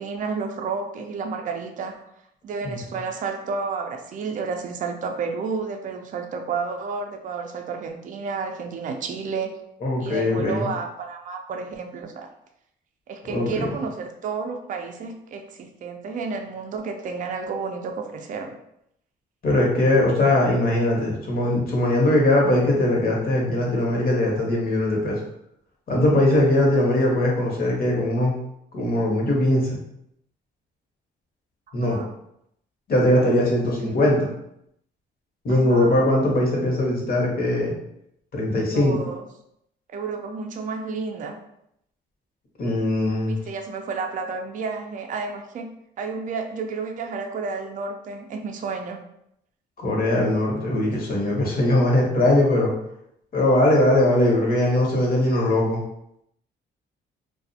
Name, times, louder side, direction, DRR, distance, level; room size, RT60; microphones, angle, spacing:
voice 1, 0.0-2.0 2.4-9.5 10.0-12.3 13.1-18.6 31.8-32.1 33.8-34.1 35.5-36.1 38.7-39.2 39.9-41.4 43.2-45.7 46.0-49.0 50.7-50.9, right 4 dB, 40° right, 4 dB, 0.4 m, -31 dB
voice 2, 9.8-10.6 13.2-13.7 19.4-25.2 25.9-28.3 28.7-29.8 31.7-32.0 32.9-34.3 35.4-37.7 38.3-39.0 42.6-43.3 49.8-52.7 53.3-55.8, left 1 dB, 50° left, -2 dB, 0.8 m, -20 dB
2.3 x 2.0 x 2.6 m, 0.77 s
cardioid pair, 90°, 20 cm